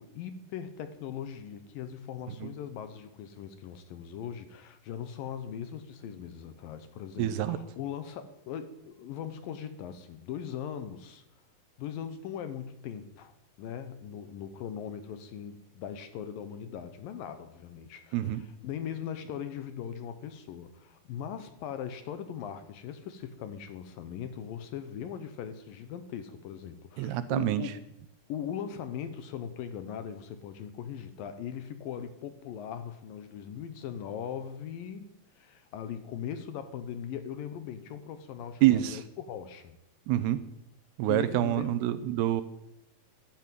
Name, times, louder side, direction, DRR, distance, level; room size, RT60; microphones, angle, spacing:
voice 1, 0.0-11.2 11.8-27.7 28.3-35.1 35.3-39.8 41.0-42.2, left 8 dB, 70° left, 11 dB, 2.4 m, -40 dB
voice 2, 7.2-7.6 18.1-18.4 27.0-27.6 38.6-39.0 40.1-40.4 41.0-42.4, right 13 dB, 85° right, 12 dB, 2.8 m, -26 dB
14.0 x 10.5 x 9.3 m, 0.84 s
omnidirectional pair, 4.6 m